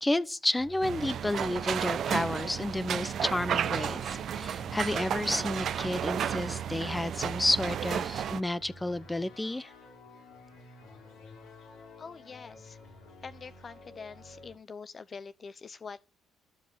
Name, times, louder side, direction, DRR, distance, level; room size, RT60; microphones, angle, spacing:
voice 1, 0.0-9.7, left 1 dB, 15° left, 0.9 m, -31 dB
sound 1, 0.5-14.5, left 3 dB, 75° left, 5.9 m, -51 dB
sound 2, 0.8-8.4, right 9 dB, 55° right, 0.8 m, -33 dB
voice 2, 12.0-12.8 13.2-16.1, left 5 dB, 40° left, 0.6 m, -45 dB
14.0 x 7.5 x 8.8 m
figure-of-eight pair, 50°, 0 cm